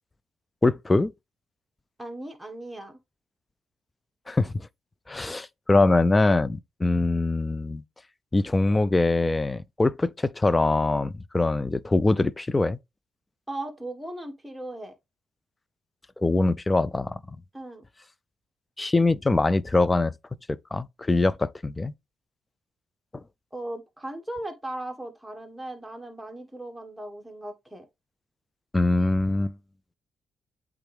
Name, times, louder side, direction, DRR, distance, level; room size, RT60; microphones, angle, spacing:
voice 1, 0.6-1.1 4.3-4.7 5.1-7.8 8.3-12.8 16.2-17.2 18.8-20.1 20.7-21.9 28.7-29.5, left 2 dB, 20° left, 0.4 m, -23 dB
voice 2, 2.0-3.0 13.5-14.9 17.5-17.8 23.5-27.9, right 1 dB, 5° right, 1.6 m, -37 dB
8.1 x 3.6 x 3.4 m
cardioid pair, 90°, 0 cm